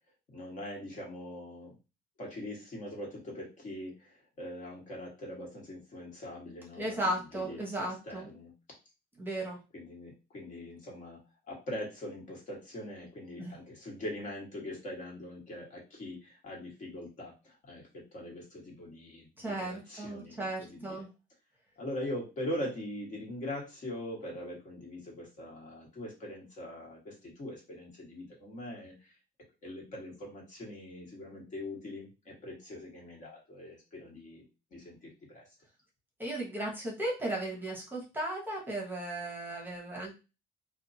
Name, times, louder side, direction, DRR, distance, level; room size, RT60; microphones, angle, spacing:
voice 1, 0.3-1.7 2.2-8.5 9.7-11.2 11.5-21.0 21.8-29.1 29.6-34.4 34.7-35.4, left 1 dB, 45° left, -2 dB, 1.4 m, -42 dB
voice 2, 6.8-8.3 9.2-9.6 13.4-13.6 19.4-21.1 36.2-40.1, right 1 dB, 10° right, -2 dB, 0.9 m, -35 dB
2.7 x 2.2 x 2.7 m, 0.29 s
cardioid pair, 110°, 17 cm